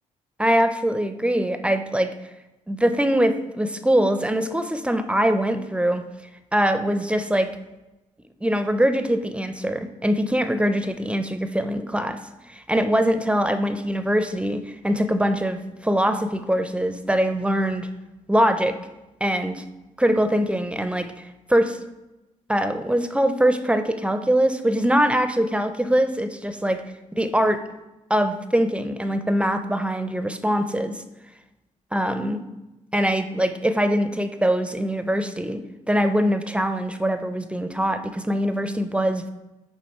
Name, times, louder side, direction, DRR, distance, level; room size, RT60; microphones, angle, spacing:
voice 1, 0.4-2.1 2.7-6.0 6.5-7.6 8.4-12.2 12.5-17.9 18.3-18.8 19.2-19.6 20.0-21.8 22.5-26.8 27.2-27.6 28.1-31.0 31.9-32.4 32.9-39.3, equal, 10° right, 9 dB, 0.5 m, -23 dB
8.5 x 3.0 x 4.3 m, 1.0 s
cardioid pair, 75°, 14 cm